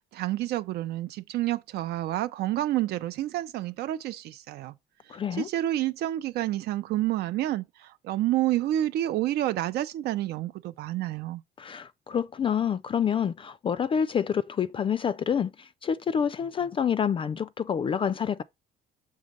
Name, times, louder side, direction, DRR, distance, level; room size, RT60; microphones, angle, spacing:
voice 1, 0.1-4.7 5.3-11.4, right 14 dB, 75° right, 0.5 m, -29 dB
voice 2, 5.1-5.5 11.6-18.4, left 7 dB, 30° left, 0.3 m, -28 dB
6.3 x 3.5 x 5.3 m
cardioid pair, 110°, 17 cm